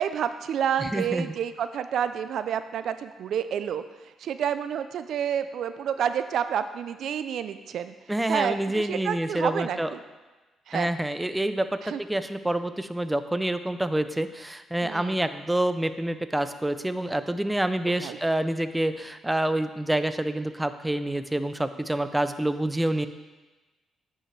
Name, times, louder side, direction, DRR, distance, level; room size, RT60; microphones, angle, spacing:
voice 1, 0.0-3.8 4.2-7.9 8.3-10.0 10.7-10.9 11.8-12.0 14.8-15.2 17.9-18.2, right 8 dB, 70° right, 11 dB, 0.4 m, -29 dB
voice 2, 0.8-1.4 8.1-9.9 10.7-23.1, right 1 dB, 10° right, 11 dB, 0.4 m, -27 dB
9.6 x 5.4 x 3.2 m, 1.2 s
cardioid pair, 90°, 0 cm